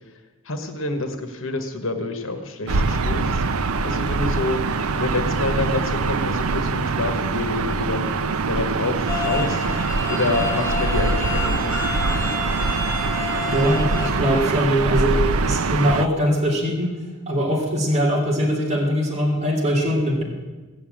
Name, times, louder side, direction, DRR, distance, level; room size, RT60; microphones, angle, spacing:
voice 1, 0.4-3.4 3.8-4.6 5.0-8.1 8.5-9.6 10.1-12.1, left 2 dB, 65° left, 6 dB, 1.5 m, -27 dB
Gull seagull / Ocean, 2.7-16.1, right 4 dB, 80° right, 0.6 m, -23 dB
sound 1, 9.1-14.1, left 5 dB, 15° left, 3.1 m, -29 dB
voice 2, 13.5-16.9 17.3-20.2, equal, 30° right, -3 dB, 2.6 m, -21 dB
17.0 x 7.2 x 8.8 m, 1.3 s
head